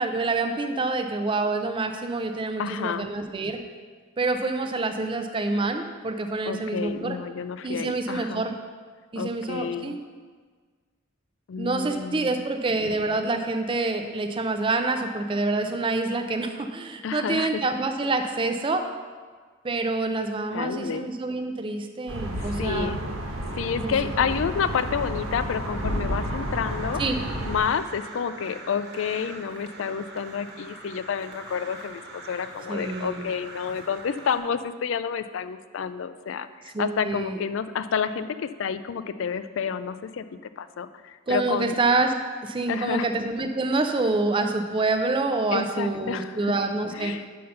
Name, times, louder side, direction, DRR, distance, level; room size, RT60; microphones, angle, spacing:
voice 1, 0.0-3.6 4.2-7.2 7.6-8.5 9.1-10.0 11.6-18.9 19.6-22.9 23.8-23.9 27.0-27.2 32.7-33.3 36.7-37.4 41.3-42.1 42.4-47.1, right 3 dB, 25° right, 6 dB, 0.4 m, -27 dB
voice 2, 2.6-3.1 6.5-8.5 9.2-10.0 11.5-12.4 17.0-17.6 20.5-21.1 22.4-23.0 23.6-27.0 27.5-40.2 40.6-41.8 42.7-43.1 45.5-46.6 46.9-47.2, left 6 dB, 65° left, 13 dB, 0.3 m, -29 dB
sound 1, 22.1-27.6, equal, 80° right, 1.2 m, -31 dB
Crow, 24.3-34.4, right 2 dB, 50° right, 1.2 m, -44 dB
5.6 x 5.6 x 6.5 m, 1.5 s
head